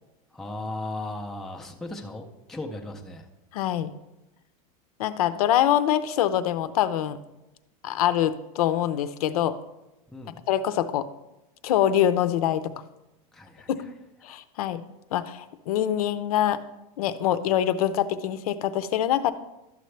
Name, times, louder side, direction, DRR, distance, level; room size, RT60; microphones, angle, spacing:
voice 1, 0.3-3.3 10.1-10.4 13.3-13.7, left 2 dB, ahead, 1 dB, 0.4 m, -36 dB
voice 2, 3.5-3.9 5.0-7.2 7.8-9.6 10.5-11.1 11.6-12.7 13.7-13.9 14.2-14.8 15.1-16.6 17.0-19.3, left 11 dB, 85° left, 13 dB, 0.6 m, -24 dB
12.0 x 6.7 x 3.2 m, 0.97 s
supercardioid pair, 170°, 19 cm